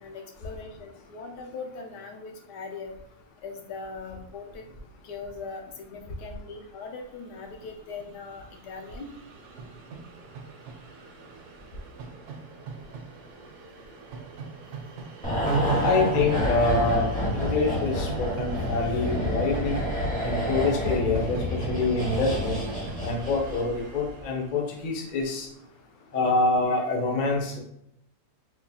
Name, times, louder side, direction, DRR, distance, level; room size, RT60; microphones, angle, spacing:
voice 1, 0.0-2.9 3.4-4.6 5.0-9.1 26.7-27.0, left 4 dB, 85° left, 4 dB, 1.2 m, -40 dB
Train, 6.6-6.7 6.9-25.3, right 4 dB, 75° right, 1.1 m, -43 dB
sound 1, 15.2-23.8 24.0-24.2, equal, 10° left, 0.6 m, -28 dB
voice 2, 15.8-19.8 20.2-22.6 23.0-25.5 26.1-27.6, left 3 dB, 55° left, 1 dB, 0.5 m, -26 dB
4.3 x 2.8 x 2.3 m, 0.74 s
omnidirectional pair, 1.7 m